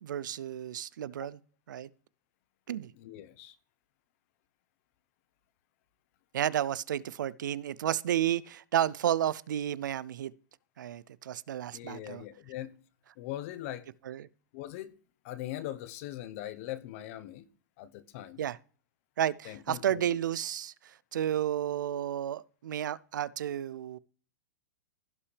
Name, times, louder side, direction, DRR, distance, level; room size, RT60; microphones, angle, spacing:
voice 1, 0.0-1.4 1.7-1.9 2.7-2.9 6.3-10.3 10.8-12.2 14.1-14.3 18.4-18.6 19.2-24.0, right 10 dB, 80° right, 0.4 m, -32 dB
voice 2, 3.0-3.6 11.7-12.8 13.2-13.9 14.5-14.9 15.2-17.5 17.8-18.4 19.4-20.2, left 13 dB, 45° left, 0.9 m, -41 dB
16.5 x 5.7 x 3.3 m
hypercardioid pair, 145°, 10 cm